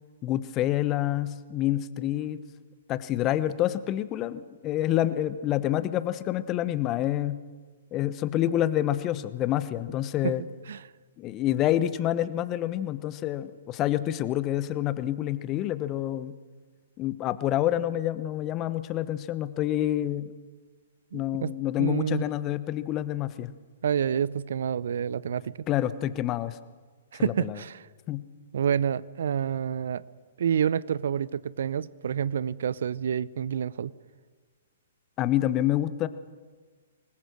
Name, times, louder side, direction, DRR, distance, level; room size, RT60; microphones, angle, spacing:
voice 1, 0.2-2.4 2.9-7.4 7.9-10.4 11.2-16.3 17.0-20.3 21.1-23.5 25.7-26.6 27.2-27.6 28.1-28.2 35.2-36.1, left 13 dB, 25° left, 14 dB, 1.1 m, -27 dB
voice 2, 21.1-22.2 23.8-25.5 27.1-27.8 28.5-30.0 30.4-33.9, right 8 dB, 60° right, 20 dB, 0.7 m, -28 dB
25.5 x 20.5 x 6.4 m, 1.5 s
figure-of-eight pair, 115°, 0 cm